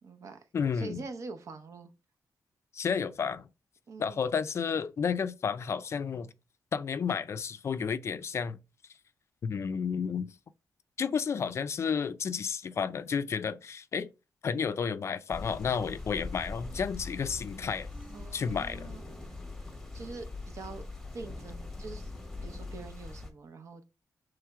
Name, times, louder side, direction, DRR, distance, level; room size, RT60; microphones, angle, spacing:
voice 1, 0.0-0.4 0.7-1.9 3.9-4.2 18.1-19.4 19.9-20.8 21.1-22.1 22.4-23.8, right 4 dB, 55° right, 0.7 m, -44 dB
voice 2, 0.5-1.0 2.7-3.5 4.0-6.3 6.7-8.6 9.4-10.3 11.0-14.1 14.4-17.9 18.3-19.0, left 6 dB, 45° left, 0.3 m, -31 dB
sound 1, 15.3-23.3, left 3 dB, 5° left, 1.1 m, -42 dB
sound 2, 17.9-19.6, right 2 dB, 20° right, 1.1 m, -56 dB
3.5 x 3.2 x 4.5 m
wide cardioid pair, 145°, 6 cm